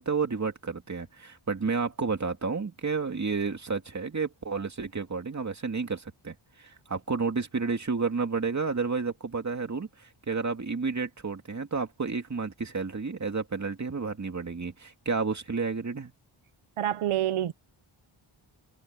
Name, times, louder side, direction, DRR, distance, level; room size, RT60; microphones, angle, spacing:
voice 1, 0.0-16.1, right 4 dB, 35° right, 2.4 m, -31 dB
voice 2, 16.8-17.5, right 12 dB, 85° right, 0.8 m, -27 dB
wide cardioid pair, 160°, 50 cm